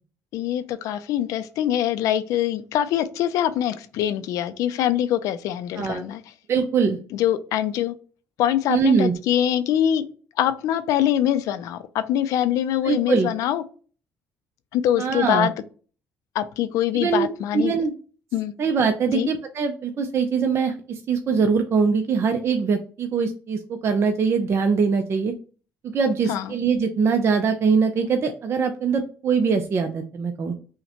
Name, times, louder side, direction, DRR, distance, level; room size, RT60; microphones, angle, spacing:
voice 1, 0.3-6.2 7.1-7.9 8.4-10.1 10.4-13.6 14.7-15.5 16.3-17.7 18.3-18.5 19.1-19.3 26.3-26.5, left 11 dB, 80° left, 12 dB, 0.4 m, -23 dB
voice 2, 6.5-7.0 8.7-9.1 12.8-13.3 15.0-15.5 16.9-17.3 17.5-17.9 18.6-25.3 25.9-30.5, right 5 dB, 50° right, 5 dB, 0.5 m, -22 dB
5.5 x 2.1 x 2.8 m, 0.39 s
supercardioid pair, 80°, 6 cm